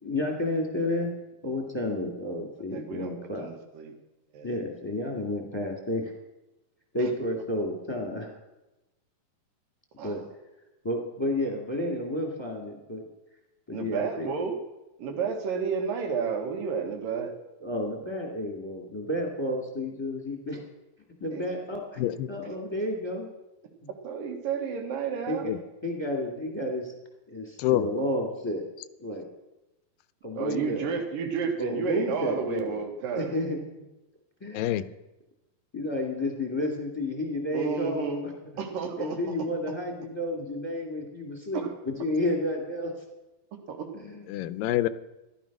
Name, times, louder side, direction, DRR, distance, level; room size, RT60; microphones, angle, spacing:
voice 1, 0.0-1.1 1.4-3.5 4.4-6.1 6.9-8.3 10.0-10.2 10.8-13.0 13.7-14.3 17.6-20.6 21.2-22.0 22.3-23.3 25.3-25.5 25.8-26.9 27.3-28.6 29.0-29.3 30.2-31.0 31.6-32.8 33.1-33.6 34.4-34.9 35.7-38.3 39.0-42.9 43.9-44.3, left 1 dB, 10° left, 1 dB, 1.6 m, -31 dB
voice 2, 2.7-3.9 4.3-4.5 7.0-7.1 10.0-10.2 13.7-14.6 15.0-17.3 21.3-21.4 24.0-25.5 30.4-33.3 37.5-38.3 38.6-39.4 41.5-41.7 43.7-43.9, right 6 dB, 80° right, 4 dB, 3.3 m, -31 dB
voice 3, 22.0-22.3 25.4-25.6 27.6-27.9 34.5-34.8 44.3-44.9, left 14 dB, 85° left, 15 dB, 2.3 m, -26 dB
14.5 x 11.5 x 6.1 m, 0.99 s
omnidirectional pair, 4.0 m